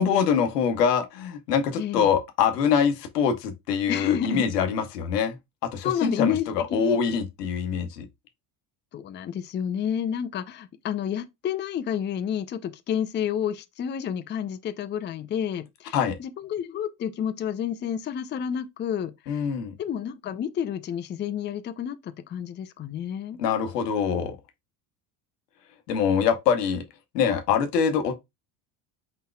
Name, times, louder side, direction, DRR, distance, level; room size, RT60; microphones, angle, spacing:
voice 1, 0.0-5.4 5.6-6.3 6.7-8.1 15.9-16.2 19.3-19.7 23.4-24.4 25.9-26.8 27.1-28.1, left 7 dB, 90° left, 0.9 m, -24 dB
voice 2, 1.8-2.1 3.9-4.5 5.8-7.0 8.9-19.5 19.8-23.4, left 9 dB, 25° left, 0.4 m, -30 dB
4.5 x 3.9 x 2.2 m
hypercardioid pair, 75°, 47 cm